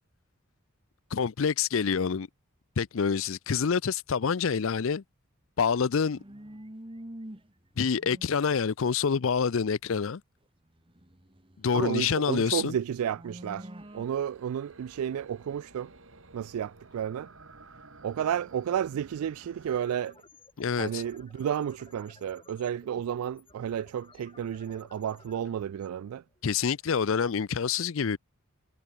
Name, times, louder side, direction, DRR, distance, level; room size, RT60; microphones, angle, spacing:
voice 1, 1.1-2.3 2.8-5.0 5.6-6.2 7.8-10.2 11.6-12.8 20.6-21.0 26.4-28.2, left 6 dB, 60° left, 0.5 m, -27 dB
sound 1, 5.8-7.5 7.8-8.4 10.9-12.2 12.6-14.0, right 1 dB, 25° right, 1.6 m, -46 dB
voice 2, 11.7-15.9 16.3-17.3 18.0-20.2 20.8-26.2, right 9 dB, 75° right, 0.3 m, -32 dB
sound 2, 13.8-19.8, right 3 dB, 60° right, 3.3 m, -53 dB
sound 3, 19.7-26.6, left 3 dB, 25° left, 7.0 m, -57 dB
head